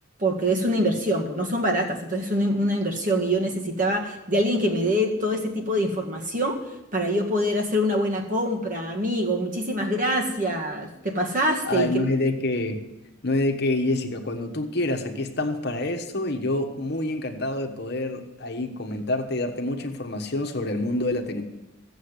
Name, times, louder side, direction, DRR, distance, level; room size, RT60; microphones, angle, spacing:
voice 1, 0.2-6.6 6.9-12.0, equal, 40° right, 1 dB, 1.9 m, -24 dB
voice 2, 11.6-12.8 13.2-21.4, left 2 dB, 50° left, 5 dB, 1.2 m, -27 dB
15.0 x 7.1 x 8.1 m, 0.95 s
head